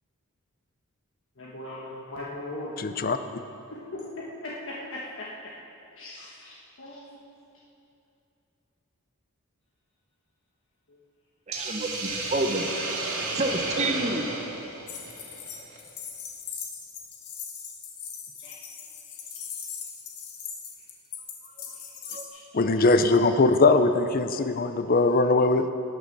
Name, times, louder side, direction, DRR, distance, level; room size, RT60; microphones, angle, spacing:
voice 1, 1.4-2.8 3.7-5.5 6.0-7.2 18.4-18.5 19.3-19.4 22.3-22.4 22.7-22.9, left 1 dB, 60° left, -5 dB, 1.4 m, -39 dB
voice 2, 2.8-3.2 22.5-25.7, left 3 dB, 40° left, 10 dB, 0.5 m, -21 dB
voice 3, 11.5-12.7 13.4-14.3 22.1-22.2, right 2 dB, 30° right, 5 dB, 0.9 m, -28 dB
Hiss, 11.5-15.8, right 3 dB, 70° right, 2.1 m, -33 dB
sound 1, 14.9-22.3, left 7 dB, 85° left, 1.5 m, -40 dB
18.5 x 6.5 x 6.1 m, 2.7 s
head